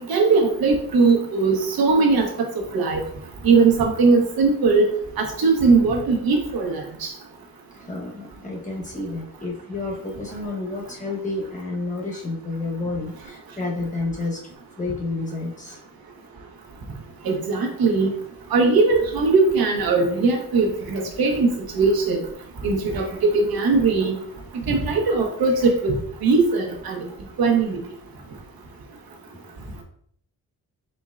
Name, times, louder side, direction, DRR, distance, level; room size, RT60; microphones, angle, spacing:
voice 1, 0.1-2.3 2.7-3.0 3.4-4.9 5.2-7.1 17.2-18.1 18.5-21.5 21.7-22.2 22.6-24.2 24.7-27.0 27.4-27.8, right 4 dB, 90° right, 2 dB, 1.0 m, -19 dB
voice 2, 7.7-14.4 14.8-15.8, left 2 dB, 20° left, -1 dB, 1.0 m, -30 dB
4.4 x 4.2 x 2.4 m, 0.64 s
wide cardioid pair, 160°, 35 cm